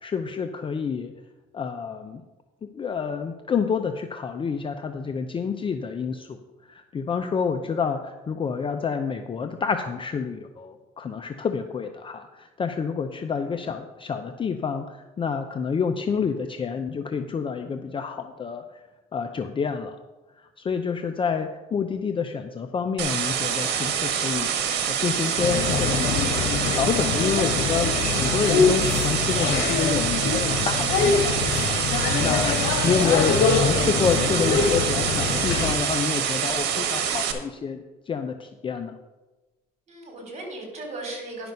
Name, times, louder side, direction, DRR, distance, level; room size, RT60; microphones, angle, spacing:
voice 1, 0.0-1.1 1.5-2.2 2.7-6.4 6.7-18.8 19.1-20.0 20.4-31.5 32.2-39.0, left 6 dB, 30° left, 6 dB, 0.6 m, -28 dB
sound 1, 23.0-37.3, right 8 dB, 80° right, 1.3 m, -26 dB
sound 2, 25.4-35.8, left 5 dB, 85° left, 1.1 m, -24 dB
voice 2, 39.9-41.5, right 2 dB, 40° right, 1 dB, 3.7 m, -38 dB
10.5 x 6.0 x 5.4 m, 1.1 s
cardioid pair, 110°, 17 cm